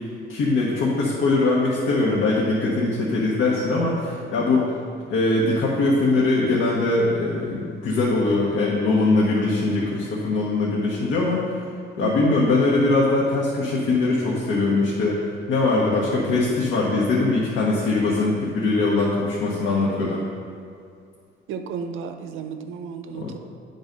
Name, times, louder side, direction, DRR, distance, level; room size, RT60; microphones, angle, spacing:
voice 1, 0.3-4.7 5.1-11.5 12.0-15.2 15.5-20.2 23.1-23.3, left 2 dB, 80° left, -5 dB, 1.2 m, -21 dB
voice 2, 12.0-12.4 21.5-23.4, right 6 dB, 75° right, 7 dB, 0.6 m, -33 dB
9.6 x 4.0 x 5.2 m, 2.3 s
cardioid pair, 155°, 21 cm